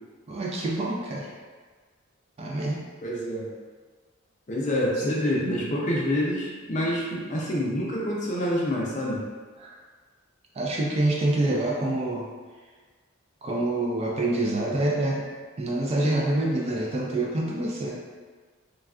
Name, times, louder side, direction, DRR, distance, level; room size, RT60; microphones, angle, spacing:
voice 1, 0.3-1.3 2.4-2.8 5.0-5.1 9.6-9.7 10.6-12.3 13.4-15.2 15.6-18.0, right 2 dB, 30° right, -3 dB, 0.3 m, -26 dB
voice 2, 3.0-3.5 4.5-9.2, equal, 35° left, -4 dB, 0.5 m, -27 dB
3.3 x 2.3 x 2.4 m, 1.4 s
head